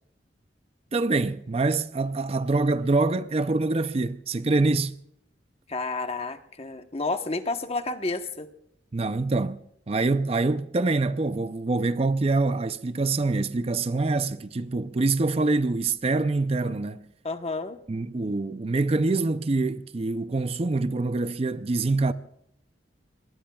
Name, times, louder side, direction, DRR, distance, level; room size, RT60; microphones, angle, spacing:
voice 1, 0.9-4.9 8.9-9.6 9.9-17.0 17.9-22.1, right 3 dB, 35° right, 0.5 m, -25 dB
voice 2, 5.7-8.5 17.2-17.8, left 3 dB, 35° left, 1.0 m, -30 dB
25.5 x 20.0 x 2.3 m
head